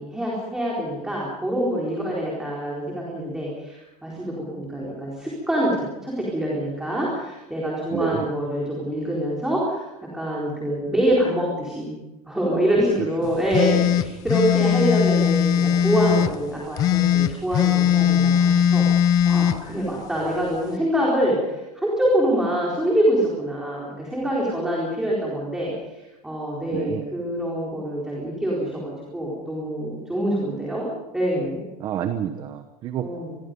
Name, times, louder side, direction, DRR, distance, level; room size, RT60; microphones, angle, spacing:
voice 1, 0.0-9.9 10.1-11.9 12.3-18.9 19.2-30.9 31.1-31.7 33.0-33.4, equal, 5° right, -5 dB, 4.3 m, -25 dB
voice 2, 7.9-8.3 13.2-13.4 26.7-27.0 31.8-33.1, right 10 dB, 20° right, 8 dB, 1.0 m, -29 dB
sound 1, 13.5-16.3 16.8-19.6, left 9 dB, 20° left, 0.7 m, -19 dB
27.5 x 21.5 x 5.4 m, 1.0 s
supercardioid pair, 180°, 20 cm